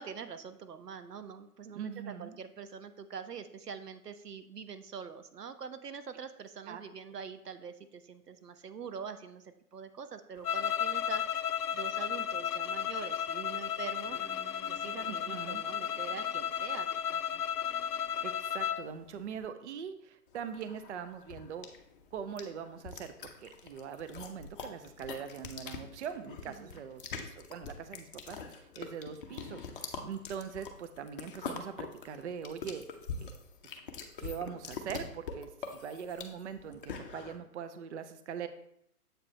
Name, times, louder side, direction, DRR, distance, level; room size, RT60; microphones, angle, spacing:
voice 1, 0.0-11.2 11.7-14.2 14.7-17.4 26.6-26.8, right 6 dB, 90° right, 10 dB, 0.7 m, -44 dB
voice 2, 1.7-2.4 6.7-6.8 15.1-15.6 18.2-21.7 22.1-32.9 33.2-33.4 34.2-38.5, right 7 dB, 50° right, 10 dB, 0.5 m, -42 dB
sound 1, 10.4-18.9, left 9 dB, 75° left, 0.5 m, -34 dB
sound 2, 14.0-18.9, left 2 dB, 15° left, 1.6 m, -56 dB
sound 3, 20.3-37.4, left 5 dB, 35° left, 0.6 m, -44 dB
7.6 x 4.7 x 3.1 m, 0.73 s
figure-of-eight pair, 130°, 46 cm